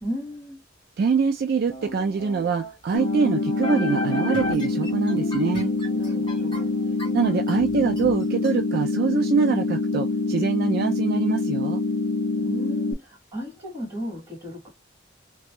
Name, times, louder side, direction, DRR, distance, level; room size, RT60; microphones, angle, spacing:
voice 1, 0.0-0.6 5.9-6.7 12.3-14.7, equal, 15° right, 1.6 m, -35 dB
voice 2, 1.0-5.7 7.1-11.8, right 5 dB, 50° right, 0.3 m, -24 dB
sound 1, 1.7-8.5, equal, 25° left, 0.9 m, -35 dB
sound 2, 2.9-12.9, left 3 dB, 85° left, 0.4 m, -25 dB
2.9 x 2.3 x 2.8 m
head